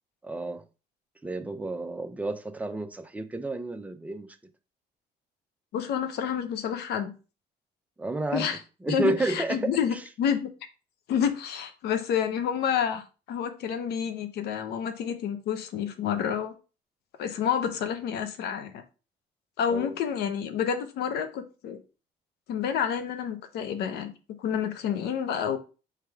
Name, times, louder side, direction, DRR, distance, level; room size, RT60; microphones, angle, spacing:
voice 1, 0.2-0.6 1.2-4.4 8.0-8.5 8.8-9.7 19.7-19.9, right 2 dB, 10° right, 0.5 m, -31 dB
voice 2, 5.7-7.1 8.3-8.6 8.9-10.5 11.1-16.5 17.2-18.8 19.6-21.8 22.5-25.6, left 8 dB, 75° left, 0.7 m, -29 dB
3.4 x 3.3 x 4.7 m
cardioid pair, 110°, 17 cm